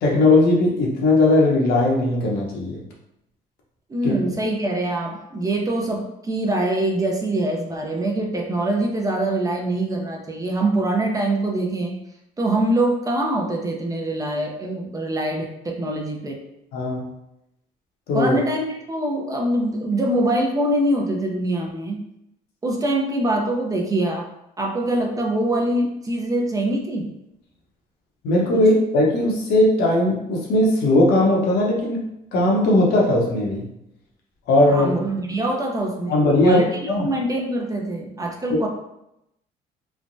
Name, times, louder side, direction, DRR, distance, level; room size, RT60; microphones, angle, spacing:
voice 1, 0.0-2.8 4.0-4.1 16.7-17.1 18.1-18.4 28.2-32.0 32.3-33.7 34.5-34.9 36.1-37.1 38.5-38.6, left 1 dB, 80° left, -2 dB, 0.9 m, -18 dB
voice 2, 3.9-11.9 12.4-16.4 18.1-22.0 22.6-24.3 24.6-27.1 28.5-28.6 34.7-36.2 36.4-38.7, right 1 dB, 20° right, 1 dB, 0.5 m, -24 dB
3.2 x 2.1 x 2.6 m, 0.83 s
cardioid pair, 110°, 17 cm